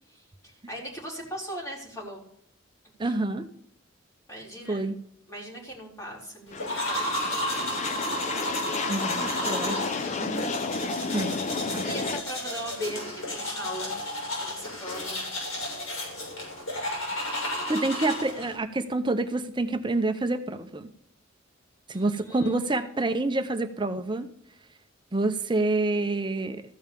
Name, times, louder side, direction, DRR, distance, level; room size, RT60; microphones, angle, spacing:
voice 1, 0.1-2.2 3.0-3.1 4.3-4.9 5.3-7.3 9.7-9.8 11.8-14.0 14.3-15.3 21.9-22.6, equal, 15° left, -3 dB, 3.6 m, -39 dB
voice 2, 3.0-3.5 4.7-4.9 8.9-9.9 10.2-10.6 11.1-11.4 11.7-11.9 17.1-17.2 17.7-20.9 21.9-24.3 25.1-26.6, right 2 dB, 25° right, 8 dB, 0.6 m, -28 dB
sound 1, 6.5-12.2, left 4 dB, 35° left, 0.5 m, -32 dB
sound 2, 6.6-18.6, left 1 dB, 80° left, 6.2 m, -32 dB
14.5 x 5.5 x 6.8 m, 0.71 s
head